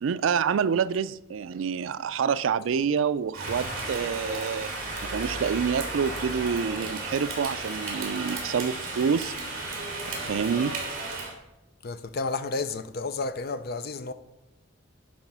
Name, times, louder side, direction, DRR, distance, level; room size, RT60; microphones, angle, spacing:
voice 1, 0.0-4.7 5.1-9.3 10.1-10.8, right 6 dB, 80° right, 0.4 m, -27 dB
Rain, 3.3-11.3, right 2 dB, 45° right, 2.7 m, -34 dB
voice 2, 11.8-14.1, left 3 dB, 50° left, 0.6 m, -31 dB
10.5 x 4.8 x 5.5 m
head